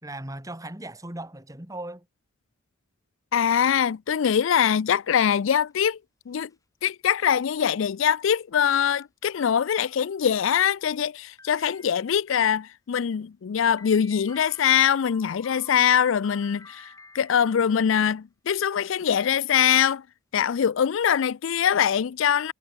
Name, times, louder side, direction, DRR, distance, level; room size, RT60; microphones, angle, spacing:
voice 1, 0.0-2.0, right 1 dB, 15° right, 2.1 m, -37 dB
voice 2, 3.3-6.0 6.3-6.5 6.8-20.0 20.3-22.5, left 8 dB, 65° left, 0.4 m, -23 dB
sound 1, 5.3-5.7 6.3-6.5 7.1-7.2 7.6-7.7 8.4-8.5 9.0-9.1 9.4-10.2 11.4-12.3 13.8-18.0, left 3 dB, 15° left, 7.6 m, -50 dB
head